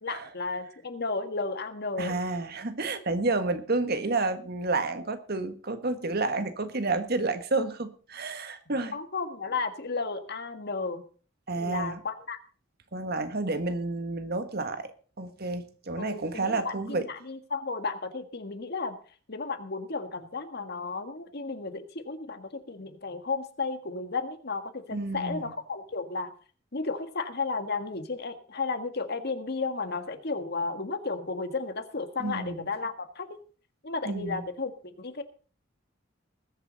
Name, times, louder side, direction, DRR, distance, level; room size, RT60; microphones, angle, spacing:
voice 1, 0.0-2.1 8.7-11.0 11.6-12.4 16.0-19.0 19.3-26.3 26.7-33.4 33.8-35.2, left 4 dB, 60° left, 1.7 m, -33 dB
voice 2, 2.0-8.9 11.5-12.0 12.9-14.9 15.2-17.0 24.9-25.4 32.2-32.6 34.0-34.4, right 3 dB, 55° right, 1.5 m, -30 dB
20.5 x 8.3 x 4.0 m
head